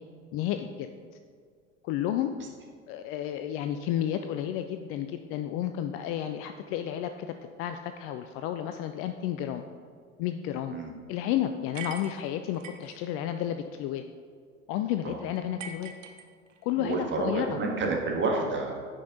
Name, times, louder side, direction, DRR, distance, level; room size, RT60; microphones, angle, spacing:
voice 1, 0.3-0.9 1.8-2.3 2.9-7.3 7.6-9.6 10.2-10.8 11.1-14.0 14.7-15.9 16.6-17.6, left 11 dB, 35° left, 8 dB, 0.4 m, -31 dB
sound 1, 11.7-13.0 15.6-16.8, right 5 dB, 70° right, 0.8 m, -42 dB
voice 2, 16.8-18.9, right 3 dB, 30° right, 0 dB, 1.7 m, -29 dB
9.7 x 5.3 x 4.0 m, 2.1 s
figure-of-eight pair, 70°, 39 cm